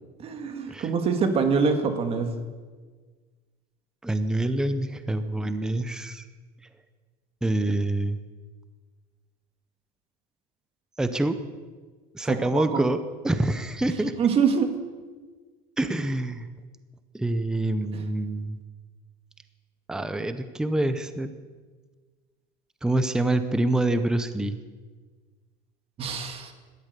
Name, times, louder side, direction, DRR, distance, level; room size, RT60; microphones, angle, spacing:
voice 1, 0.2-2.3 12.2-12.8 14.2-14.7 26.0-26.5, right 5 dB, 30° right, 7 dB, 1.8 m, -25 dB
voice 2, 4.0-6.2 7.4-8.2 11.0-11.4 12.1-13.0 13.2-14.1 15.8-16.5 17.1-18.6 19.9-21.3 22.8-24.6, right 1 dB, 5° right, 10 dB, 0.6 m, -26 dB
17.5 x 12.5 x 6.8 m, 1.4 s
cardioid pair, 160°, 19 cm